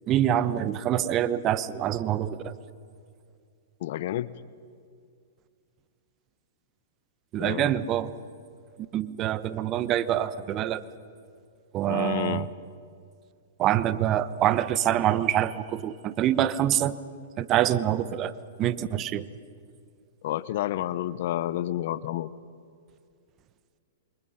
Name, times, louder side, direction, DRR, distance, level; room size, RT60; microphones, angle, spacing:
voice 1, 0.1-2.5 7.3-8.1 8.9-10.8 11.7-12.5 13.6-17.0 17.4-18.3 18.6-19.3, right 11 dB, 30° right, 15 dB, 1.1 m, -25 dB
voice 2, 3.8-4.3 7.4-7.7 11.9-12.5 20.2-22.3, left 13 dB, 60° left, 17 dB, 0.9 m, -30 dB
28.0 x 25.0 x 5.8 m, 2.3 s
hypercardioid pair, 125°, 0 cm